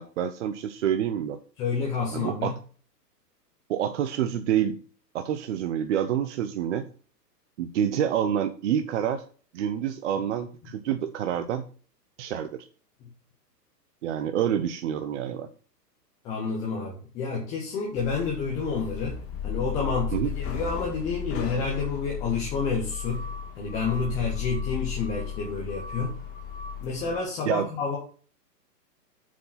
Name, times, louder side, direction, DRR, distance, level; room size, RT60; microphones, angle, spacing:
voice 1, 0.0-1.4 2.1-2.5 3.7-4.8 5.1-6.9 7.6-9.2 9.5-11.6 12.2-12.6 14.0-15.5 20.1-20.3 27.5-27.7, right 9 dB, 45° right, 8 dB, 0.7 m, -27 dB
voice 2, 1.6-2.5 16.2-19.2 19.4-23.2 23.6-26.1 26.8-28.0, left 4 dB, 10° left, -3 dB, 0.4 m, -29 dB
sound 1, 18.0-27.2, left 8 dB, 25° left, 1.8 m, -35 dB
7.4 x 4.5 x 5.5 m, 0.41 s
hypercardioid pair, 135°, 50 cm